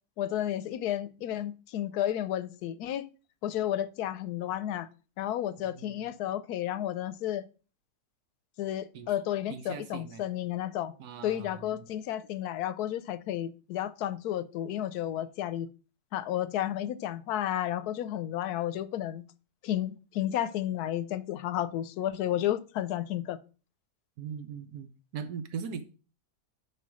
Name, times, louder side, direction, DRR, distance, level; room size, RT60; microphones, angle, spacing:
voice 1, 0.2-3.1 3.4-4.9 5.2-7.4 8.6-10.9 11.2-15.7 16.1-19.2 19.6-23.4, left 12 dB, 80° left, 1.1 m, -32 dB
voice 2, 5.6-6.0 8.9-9.1 9.5-10.2 11.0-11.9 24.2-25.8, right 6 dB, 90° right, 1.4 m, -40 dB
5.4 x 4.3 x 6.0 m
omnidirectional pair, 1.6 m